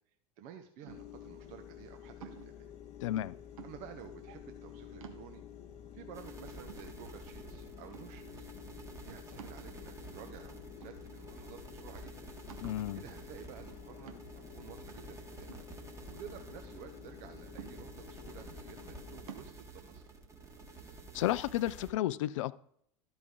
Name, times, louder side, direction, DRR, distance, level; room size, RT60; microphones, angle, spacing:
voice 1, 0.4-2.7 3.6-5.4 5.9-8.5 9.0-12.1 12.9-15.5 16.1-20.0, right 8 dB, 45° right, 6 dB, 0.8 m, -52 dB
sound 1, 0.8-1.3 2.2-2.6 3.6-4.1 4.6-4.7 5.0-5.6 6.2-6.3 6.7-7.4 7.9-8.3 9.4-10.1 10.8-11.5 11.8-11.9 12.5-12.9 14.1-14.5 15.5-16.4 17.6-18.2 19.3-19.5, right 7 dB, 60° right, 1.1 m, -51 dB
sound 2, 0.9-19.2, left 9 dB, 35° left, 0.8 m, -51 dB
voice 2, 3.0-3.3 12.6-13.0 21.1-22.5, left 14 dB, 55° left, 19 dB, 0.4 m, -32 dB
sound 3, 6.1-21.9, right 3 dB, 15° right, 1.5 m, -51 dB
13.0 x 5.0 x 3.7 m, 0.69 s
figure-of-eight pair, 80°, 20 cm